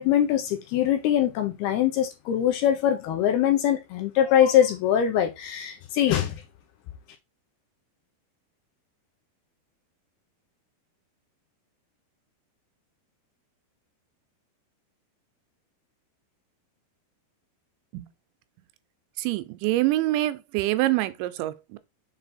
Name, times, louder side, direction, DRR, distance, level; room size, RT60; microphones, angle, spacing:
voice 1, 0.0-6.4, left 10 dB, 75° left, 2.5 m, -23 dB
voice 2, 19.2-21.8, right 17 dB, 85° right, 2.9 m, -25 dB
6.9 x 4.0 x 4.1 m
omnidirectional pair, 5.1 m